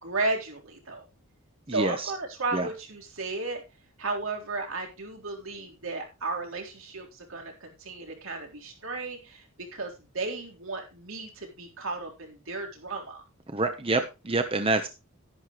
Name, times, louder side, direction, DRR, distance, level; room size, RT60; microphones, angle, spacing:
voice 1, 0.0-1.0 1.7-3.6 4.0-13.2, right 3 dB, 75° right, 1 dB, 3.8 m, -34 dB
voice 2, 1.7-2.1 2.5-2.7 13.5-14.9, right 2 dB, 25° right, 7 dB, 0.9 m, -27 dB
11.5 x 11.0 x 3.1 m, 0.27 s
head